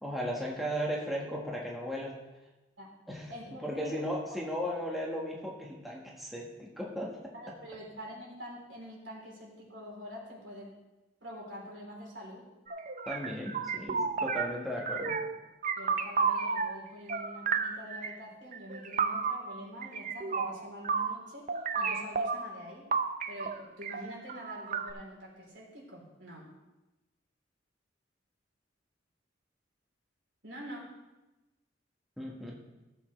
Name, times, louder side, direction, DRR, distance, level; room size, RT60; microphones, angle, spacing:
voice 1, 0.0-2.2 3.1-3.3 3.6-7.3 13.1-15.2 32.2-32.6, equal, ahead, -4 dB, 1.5 m, -36 dB
voice 2, 3.3-3.9 4.3-4.7 7.3-10.7 11.2-12.5 15.8-21.5 21.8-22.9 23.3-26.5 30.4-30.9, equal, 90° right, -3 dB, 3.6 m, -46 dB
sound 1, 12.7-14.6 14.9-15.4 15.6-16.8 17.1-18.1 18.5-21.2 21.5-22.6 22.9-24.9, right 5 dB, 40° right, 0.5 m, -32 dB
15.5 x 7.3 x 3.3 m, 1.0 s
head